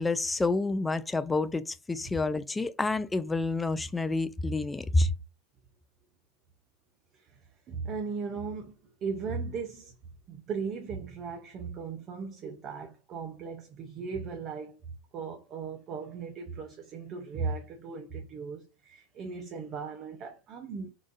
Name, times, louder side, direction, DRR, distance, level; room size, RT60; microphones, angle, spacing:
voice 1, 0.0-5.1, left 2 dB, 15° left, 0.3 m, -28 dB
voice 2, 7.7-9.9 10.3-14.8 15.1-20.9, right 5 dB, 45° right, 0.5 m, -37 dB
3.8 x 2.4 x 2.4 m
hypercardioid pair, 85°, 0 cm